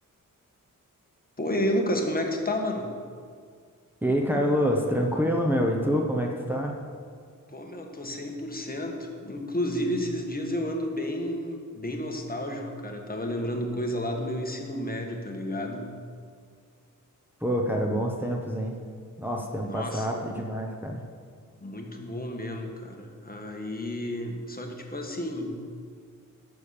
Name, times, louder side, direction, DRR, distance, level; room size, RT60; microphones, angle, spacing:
voice 1, 1.4-2.9 7.5-16.0 19.6-20.2 21.6-25.6, left 1 dB, 25° left, 2 dB, 1.5 m, -31 dB
voice 2, 4.0-6.8 17.4-18.8 19.2-21.0, equal, 5° right, 0 dB, 1.0 m, -26 dB
12.0 x 7.1 x 6.8 m, 2.1 s
wide cardioid pair, 105°, 33 cm